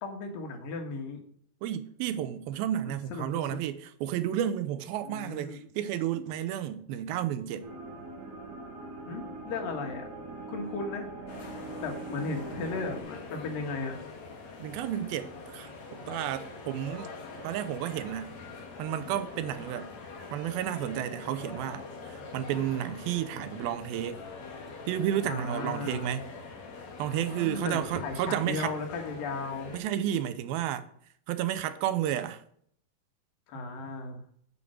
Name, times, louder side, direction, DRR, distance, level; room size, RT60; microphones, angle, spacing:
voice 1, 0.0-1.2 2.9-3.3 5.0-5.6 9.1-10.1 10.5-11.1 11.8-14.0 25.2-26.2 27.4-29.7 33.5-34.2, left 3 dB, 75° left, 3.1 m, -36 dB
voice 2, 1.6-7.7 14.6-17.1 17.4-18.3 18.8-19.9 20.3-24.2 24.9-26.2 27.0-28.7 29.7-30.8 31.3-32.4, right 11 dB, 85° right, 2.6 m, -32 dB
sound 1, 7.6-13.0, right 3 dB, 60° right, 3.2 m, -42 dB
sound 2, 11.3-29.8, left 4 dB, 55° left, 2.5 m, -44 dB
8.3 x 5.3 x 6.2 m
omnidirectional pair, 4.1 m